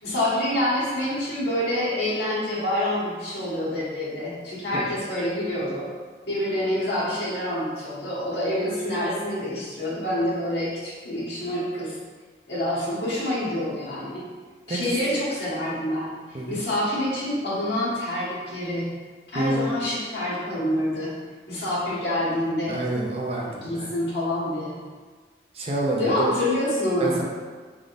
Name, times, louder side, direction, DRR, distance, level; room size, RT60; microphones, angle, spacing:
voice 1, 0.0-5.8 6.3-11.9 12.5-14.2 14.7-16.1 16.5-18.9 19.3-21.1 21.5-22.8 23.6-24.8 26.0-27.1, left 1 dB, 80° left, -8 dB, 1.4 m, -27 dB
voice 2, 19.3-19.8 22.7-23.9 25.5-26.3 27.0-27.2, right 1 dB, 35° right, -2 dB, 0.5 m, -27 dB
3.5 x 3.5 x 2.6 m, 1.5 s
head